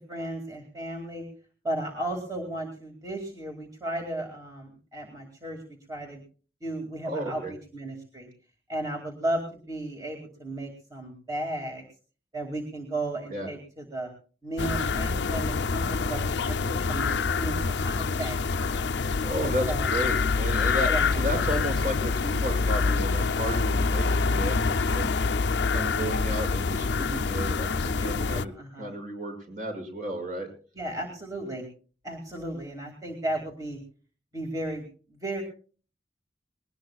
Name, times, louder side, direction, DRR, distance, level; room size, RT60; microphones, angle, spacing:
voice 1, 0.1-1.2 1.6-5.6 5.9-6.2 6.6-8.3 8.7-11.8 12.3-14.1 14.4-18.8 19.7-19.9 20.9-21.2 27.7-28.9 30.8-31.6 32.0-33.8 34.3-34.9 35.1-35.4, right 1 dB, 20° right, 1 dB, 2.3 m, -35 dB
voice 2, 7.0-7.5 13.3-13.5 19.2-24.6 24.9-25.1 25.7-28.5 28.8-30.5, right 1 dB, 50° right, 4 dB, 6.3 m, -33 dB
sound 1, 14.6-28.5, left 4 dB, 75° left, 0.6 m, -26 dB
21.0 x 19.0 x 2.3 m, 0.39 s
head